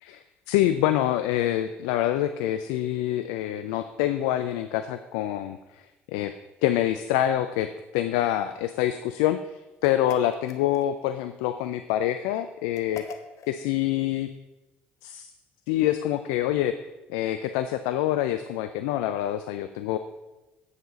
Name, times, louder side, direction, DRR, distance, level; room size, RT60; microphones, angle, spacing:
voice 1, 0.0-5.8 6.1-6.3 6.6-13.0 13.5-14.3 15.0-15.3 15.7-16.8 17.1-20.0, left 12 dB, 75° left, 10 dB, 0.3 m, -26 dB
sound 1, 9.8-11.1 12.7-13.6, left 6 dB, 60° left, 0.7 m, -43 dB
8.0 x 7.2 x 4.0 m, 1.1 s
hypercardioid pair, 55°, 6 cm